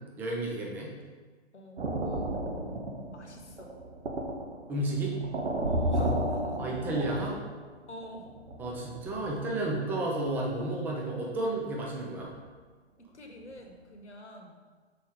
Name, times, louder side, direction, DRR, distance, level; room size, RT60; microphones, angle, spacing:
voice 1, 0.2-0.9 4.7-5.1 6.6-7.4 8.6-12.3, right 2 dB, 5° right, -2 dB, 0.4 m, -32 dB
voice 2, 1.5-2.3 3.1-3.8 5.7-6.6 7.9-8.3 13.0-14.6, left 1 dB, 80° left, 2 dB, 1.2 m, -46 dB
sound 1, 1.8-7.7 8.0-9.4 10.2-10.6 10.9-11.1 11.6-11.9 12.2-12.3, right 1 dB, 65° right, 1.0 m, -33 dB
6.1 x 4.6 x 3.6 m, 1.5 s
figure-of-eight pair, 120°, 34 cm